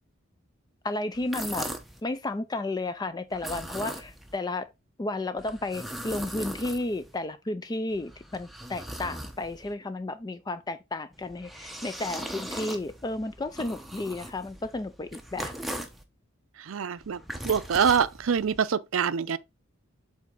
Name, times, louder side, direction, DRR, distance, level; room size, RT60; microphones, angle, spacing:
voice 1, 0.8-1.7 2.0-4.7 5.0-15.5, left 2 dB, 20° left, 0.4 m, -32 dB
sound 1, 1.1-2.0 3.3-4.4 5.4-7.2 7.9-9.7 11.1-16.0 17.0-18.6, right 1 dB, ahead, 0.8 m, -39 dB
voice 2, 16.6-17.2 17.4-19.4, right 7 dB, 80° right, 0.5 m, -25 dB
7.5 x 4.1 x 3.7 m
head